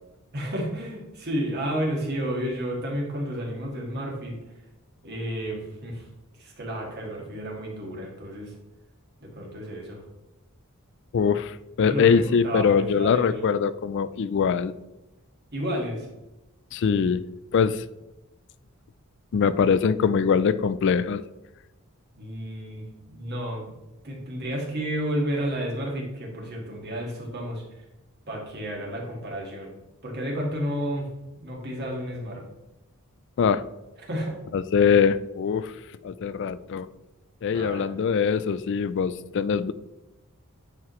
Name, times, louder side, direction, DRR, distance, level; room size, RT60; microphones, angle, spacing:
voice 1, 0.3-4.4 5.0-6.1 6.4-8.5 9.2-10.0 11.8-13.5 15.5-16.1 22.1-23.7 24.0-27.6 28.3-29.7 30.0-31.1 31.4-32.4 34.0-34.4 37.5-37.9, equal, 50° right, -1 dB, 1.9 m, -31 dB
voice 2, 11.1-14.7 16.7-17.2 17.5-17.8 19.3-21.2 33.4-33.6 34.5-35.7 36.0-36.9 37.4-39.7, left 6 dB, 55° left, 14 dB, 0.3 m, -22 dB
9.6 x 4.6 x 3.1 m, 0.98 s
head